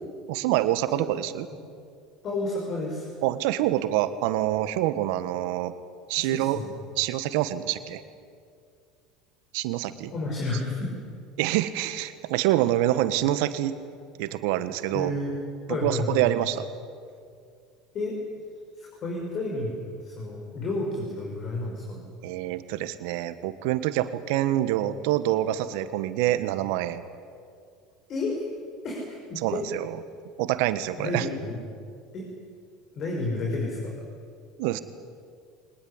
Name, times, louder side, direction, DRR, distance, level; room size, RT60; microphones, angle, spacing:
voice 1, 0.3-1.5 3.2-5.7 6.1-6.6 7.0-8.0 9.5-10.1 11.4-13.7 14.2-15.1 15.8-16.7 22.2-27.0 29.4-30.0 30.4-31.3 34.6-34.8, right 14 dB, 70° right, 12 dB, 1.5 m, -26 dB
voice 2, 2.2-3.1 6.2-6.7 10.1-10.9 14.9-15.3 15.7-16.3 17.9-18.2 18.8-22.1 28.1-28.4 28.8-29.6 31.0-31.6 32.1-32.2 32.9-33.9, left 2 dB, 45° left, 0 dB, 5.8 m, -31 dB
24.0 x 19.5 x 9.9 m, 2.2 s
hypercardioid pair, 80°, 0 cm